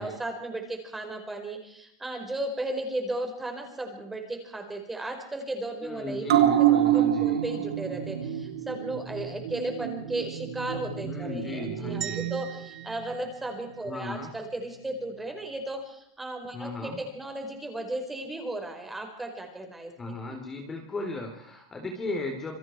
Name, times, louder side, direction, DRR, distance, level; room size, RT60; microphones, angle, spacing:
voice 1, 0.0-6.2 6.5-20.4, right 2 dB, 5° right, 4 dB, 4.9 m, -35 dB
voice 2, 5.8-7.4 11.0-12.3 13.8-14.3 16.5-17.0 20.0-22.6, left 2 dB, 15° left, 3 dB, 3.8 m, -36 dB
sound 1, 6.3-13.2 13.5-13.6, right 11 dB, 90° right, 3.3 m, -27 dB
sound 2, 12.0-14.3, right 9 dB, 20° right, 1.5 m, -41 dB
28.0 x 26.0 x 4.7 m, 0.73 s
supercardioid pair, 165°, 2 cm